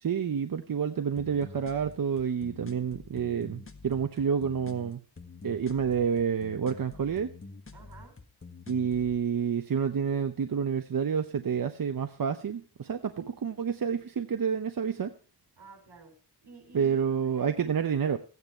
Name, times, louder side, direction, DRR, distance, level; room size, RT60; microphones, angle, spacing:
voice 1, 0.0-5.0 5.4-7.3 8.7-15.1 16.7-18.2, right 7 dB, 55° right, 8 dB, 0.9 m, -29 dB
sound 1, 1.2-9.2, left 3 dB, 35° left, 1.5 m, -47 dB
voice 2, 7.7-8.2 15.6-16.1 16.4-17.9, right 4 dB, 85° right, 4 dB, 5.4 m, -51 dB
15.0 x 9.6 x 4.5 m, 0.37 s
wide cardioid pair, 125°, 40 cm